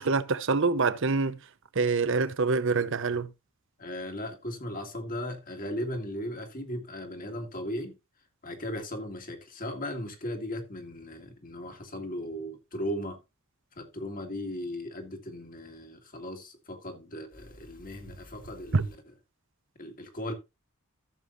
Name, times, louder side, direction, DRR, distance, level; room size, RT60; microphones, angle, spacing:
voice 1, 0.0-1.4 1.8-3.3 18.7-18.9, right 4 dB, 60° right, 0.8 m, -25 dB
voice 2, 3.8-8.0 8.4-13.2 13.8-19.0 19.8-20.3, left 1 dB, 40° left, 2.1 m, -37 dB
14.5 x 7.1 x 2.6 m
head